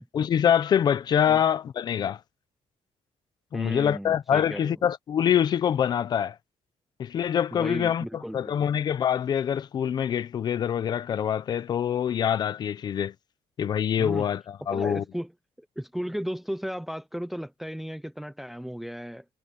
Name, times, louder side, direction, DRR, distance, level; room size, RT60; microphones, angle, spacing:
voice 1, 0.0-2.2 3.5-6.4 7.0-8.0 8.3-13.1 13.6-15.0, left 9 dB, 40° left, 0.7 m, -25 dB
voice 2, 3.5-4.8 7.5-8.7 14.0-14.3 14.7-15.3 15.6-19.2, equal, ahead, 0.5 m, -35 dB
cardioid pair, 180°, 11 cm